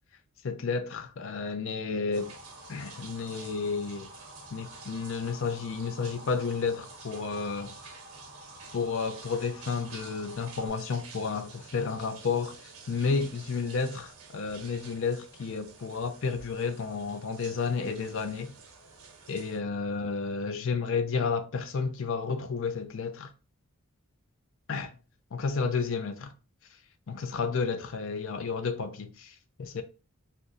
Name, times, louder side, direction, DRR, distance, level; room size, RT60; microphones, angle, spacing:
voice 1, 0.4-2.3 2.7-4.1 4.5-7.7 8.7-12.6 12.9-18.5 19.3-23.3 24.7-24.9 25.3-26.3 27.1-29.8, left 5 dB, 60° left, 0.5 m, -31 dB
Motor vehicle (road) / Siren, 2.1-10.7, left 1 dB, 30° left, 1.6 m, -50 dB
sound 1, 2.1-19.6, right 5 dB, 85° right, 0.9 m, -50 dB
2.7 x 2.5 x 4.0 m
head